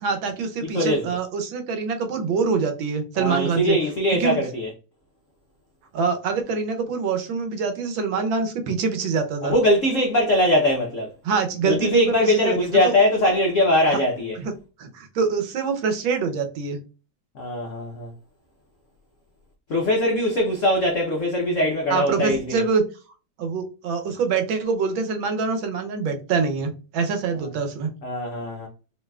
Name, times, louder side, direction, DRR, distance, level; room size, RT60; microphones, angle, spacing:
voice 1, 0.0-3.8 4.2-4.4 5.9-9.5 11.2-12.9 13.9-14.0 14.4-14.5 14.8-16.8 21.9-22.8 23.4-27.9, right 5 dB, 70° right, 1.4 m, -25 dB
voice 2, 0.6-1.1 3.2-4.7 9.4-11.1 11.6-14.4 17.3-18.1 19.7-22.6 27.4-27.6 28.0-28.7, left 1 dB, 85° left, 0.6 m, -21 dB
5.4 x 2.8 x 2.3 m
omnidirectional pair, 2.3 m